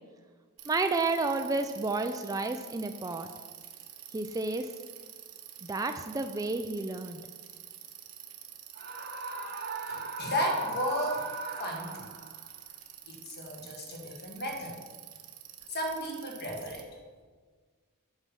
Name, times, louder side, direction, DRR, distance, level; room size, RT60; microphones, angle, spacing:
Bicycle, 0.6-16.8, right 10 dB, 85° right, 1.0 m, -49 dB
voice 1, 0.7-3.3 4.1-4.7 5.6-7.3, right 3 dB, 15° right, 6 dB, 0.3 m, -31 dB
Screaming, 8.8-12.4, right 3 dB, 45° right, 0.8 m, -38 dB
voice 2, 9.9-12.1 13.1-14.8 15.7-16.9, equal, 45° left, 1 dB, 1.7 m, -34 dB
8.1 x 5.6 x 6.1 m, 1.5 s
head